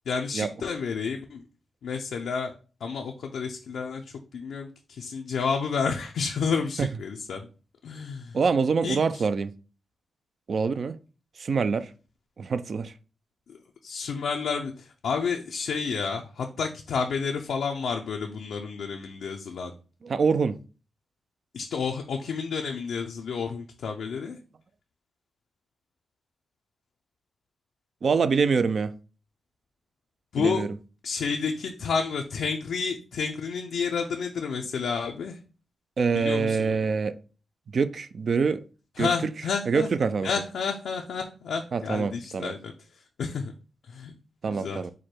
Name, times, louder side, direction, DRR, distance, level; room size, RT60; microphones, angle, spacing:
voice 1, 0.1-1.4 1.8-2.5 2.8-7.5 7.8-8.4 8.8-9.2 13.5-19.7 21.5-24.4 30.3-30.6 31.0-35.4 36.1-36.7 39.0-39.9 40.2-43.5 43.9-44.1 44.5-44.8, left 5 dB, 85° left, 0.4 m, -30 dB
voice 2, 8.3-9.5 10.5-11.0 11.4-11.9 12.4-12.9 20.0-20.6 28.0-28.9 30.4-30.7 36.0-37.2 37.7-38.6 39.0-39.3 39.7-40.3 41.7-42.5 44.4-44.9, right 5 dB, 60° right, 0.4 m, -25 dB
4.7 x 2.2 x 4.3 m
cardioid pair, 65°, 0 cm